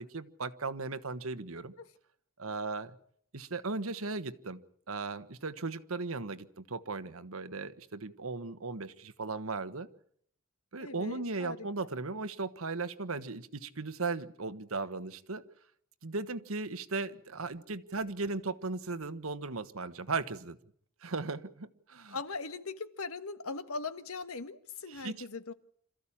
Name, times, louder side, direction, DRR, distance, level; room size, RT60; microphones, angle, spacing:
voice 1, 0.0-1.7 2.4-3.0 3.3-4.6 4.9-9.9 10.7-15.4 16.0-20.6 21.0-22.2 24.9-25.2, right 3 dB, 75° right, 1.3 m, -37 dB
voice 2, 10.8-11.7 22.1-25.5, left 4 dB, 80° left, 1.5 m, -40 dB
27.0 x 14.5 x 8.8 m
head